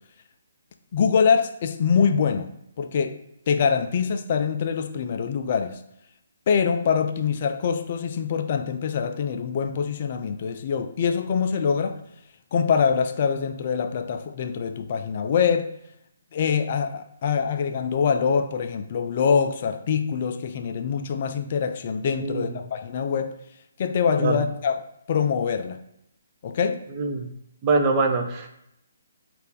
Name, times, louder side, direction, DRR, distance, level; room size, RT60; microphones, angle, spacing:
voice 1, 0.9-2.5 2.8-3.2 3.5-5.8 6.5-12.0 12.5-15.7 16.3-23.3 23.8-24.8 25.1-25.8 26.4-26.8, left 6 dB, 40° left, 7 dB, 0.3 m, -24 dB
voice 2, 27.6-28.5, right 3 dB, 25° right, 3 dB, 0.6 m, -23 dB
5.2 x 2.5 x 3.7 m, 0.79 s
figure-of-eight pair, 135°, 0 cm